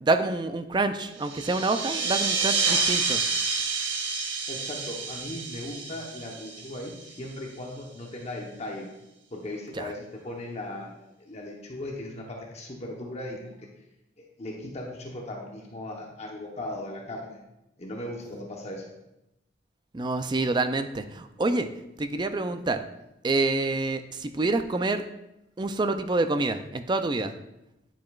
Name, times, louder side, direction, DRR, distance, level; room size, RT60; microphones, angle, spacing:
voice 1, 0.0-3.2 9.8-9.9 19.9-21.7 22.0-22.8 23.2-25.0 25.6-27.3, right 2 dB, 25° right, 9 dB, 0.4 m, -27 dB
sound 1, 1.2-7.3, right 4 dB, 80° right, 0.9 m, -29 dB
voice 2, 4.5-8.9 9.3-10.9 11.2-13.7 14.2-17.4 17.8-18.9, left 1 dB, 35° left, 0 dB, 1.0 m, -38 dB
9.5 x 7.5 x 2.4 m, 0.90 s
head